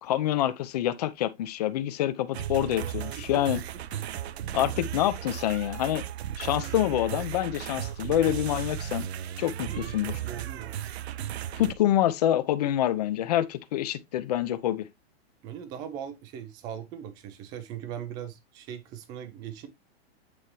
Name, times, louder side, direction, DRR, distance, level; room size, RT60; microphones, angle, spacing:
voice 1, 0.0-3.6 4.5-6.0 6.4-9.1 9.4-10.1 11.6-14.9, left 12 dB, 40° left, 0.7 m, -26 dB
sound 1, 2.3-11.7, right 11 dB, 75° right, 0.8 m, -35 dB
voice 2, 9.6-10.7 15.4-19.7, right 9 dB, 10° right, 0.5 m, -40 dB
8.8 x 4.3 x 3.1 m
supercardioid pair, 175°, 32 cm